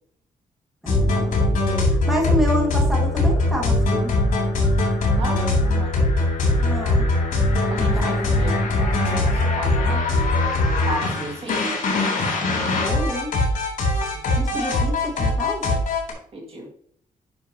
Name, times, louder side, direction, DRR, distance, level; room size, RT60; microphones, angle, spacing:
voice 1, 0.8-1.6 1.8-4.1 6.6-7.1 7.9-8.1 12.8-13.3 14.4-15.8, left 1 dB, ahead, -2 dB, 1.6 m, -28 dB
sound 1, 0.9-16.1, left 2 dB, 70° left, 3.2 m, -21 dB
voice 2, 5.1-6.4 7.7-10.1 10.9-11.6 14.5-14.6 16.3-16.7, right 2 dB, 45° right, 1 dB, 1.9 m, -34 dB
10.5 x 5.7 x 2.8 m, 0.63 s
wide cardioid pair, 145°, 14 cm